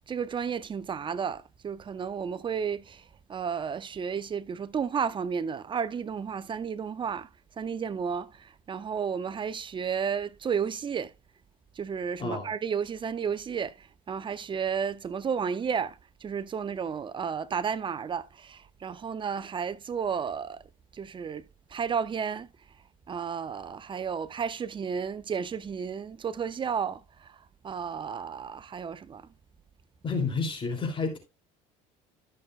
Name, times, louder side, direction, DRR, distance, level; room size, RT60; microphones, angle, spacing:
voice 1, 0.1-7.3 7.6-11.1 11.7-20.6 20.9-21.4 21.7-22.5 23.1-29.3, right 6 dB, 30° right, 0.7 m, -32 dB
voice 2, 30.0-31.2, left 4 dB, 35° left, 3.0 m, -30 dB
13.0 x 6.3 x 2.4 m
supercardioid pair, 85°, 16 cm